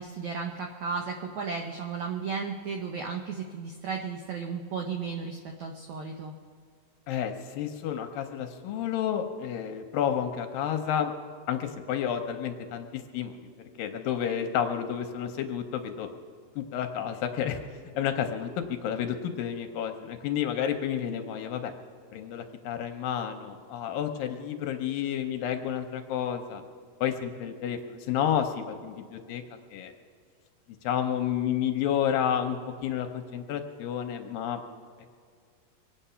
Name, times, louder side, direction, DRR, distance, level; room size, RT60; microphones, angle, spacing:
voice 1, 0.0-6.3, right 5 dB, 80° right, 3 dB, 1.6 m, -34 dB
voice 2, 7.1-11.1 11.5-13.3 13.8-16.1 16.6-17.6 18.0-21.7 22.1-26.6 27.0-29.4 29.7-29.9 30.8-34.6 35.0-35.1, left 9 dB, 75° left, 6 dB, 2.2 m, -30 dB
24.0 x 8.9 x 5.6 m, 2.1 s
omnidirectional pair, 4.4 m